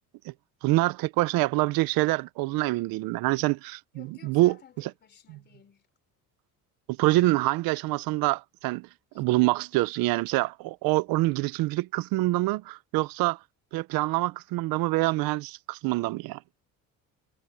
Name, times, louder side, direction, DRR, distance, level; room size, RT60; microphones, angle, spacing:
voice 1, 0.6-4.5 6.9-8.9 9.1-13.4 13.7-16.4, right 20 dB, 75° right, 0.7 m, -26 dB
voice 2, 3.9-5.9 9.1-9.2, left 8 dB, 30° left, 3.5 m, -54 dB
cardioid pair, 180°, 35 cm